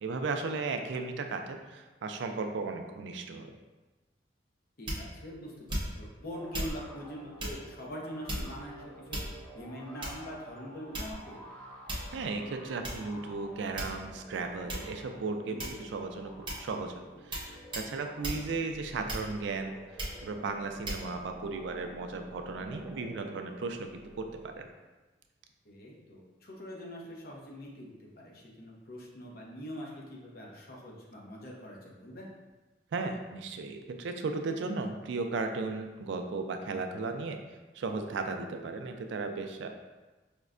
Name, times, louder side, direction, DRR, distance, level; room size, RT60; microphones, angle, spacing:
voice 1, 0.0-3.6 12.1-16.3 16.6-16.9 17.2-24.7 32.9-37.4 37.7-39.7, right 3 dB, 75° right, 6 dB, 0.3 m, -35 dB
voice 2, 4.8-9.2 9.5-11.4 15.5-15.8 25.6-32.3, equal, 55° left, -3 dB, 0.7 m, -43 dB
sound 1, 4.9-5.2 5.7-6.1 6.5-6.8 7.4-7.6 8.3-8.7 9.1-9.5 10.0-10.3 10.9-11.3 11.9-12.2 12.8-13.0 13.8-14.2 14.7-14.9 15.6-15.9 16.5-16.7 17.3-17.5 17.7-17.9 18.2-18.4 19.1-19.5 20.0-20.2 20.9-21.0, right 1 dB, 25° right, 0.7 m, -36 dB
sound 2, 6.3-24.7, equal, 5° left, 0.4 m, -51 dB
4.9 x 2.1 x 2.4 m, 1.2 s
head